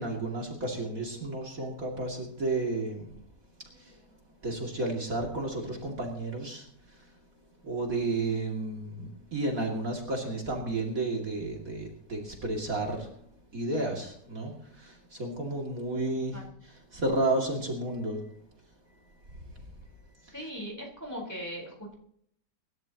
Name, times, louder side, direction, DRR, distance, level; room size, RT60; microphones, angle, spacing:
voice 1, 0.0-3.1 3.7-4.1 4.4-7.2 7.6-13.2 13.5-18.3 19.3-19.7 20.2-20.5, right 2 dB, 50° right, 0 dB, 2.9 m, -32 dB
voice 2, 20.3-21.9, equal, 10° left, -1 dB, 4.1 m, -39 dB
25.0 x 12.5 x 2.9 m, 0.67 s
omnidirectional pair, 1.9 m